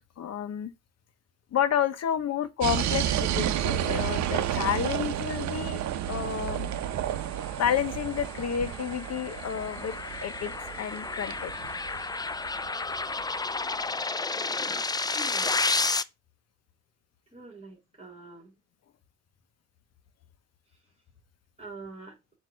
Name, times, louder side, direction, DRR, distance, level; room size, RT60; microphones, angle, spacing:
voice 1, 0.2-0.7 1.5-5.8 6.1-6.7 7.6-9.9 10.2-10.5 10.8-11.5, left 9 dB, 55° left, 1.0 m, -30 dB
sound 1, 2.6-13.3, right 11 dB, 65° right, 0.8 m, -31 dB
sound 2, 7.2-16.0, left 3 dB, 15° left, 0.4 m, -32 dB
voice 2, 15.1-15.5 17.3-18.5 21.6-22.2, right 2 dB, 20° right, 3.3 m, -45 dB
7.7 x 3.0 x 6.2 m
cardioid pair, 90°, 30 cm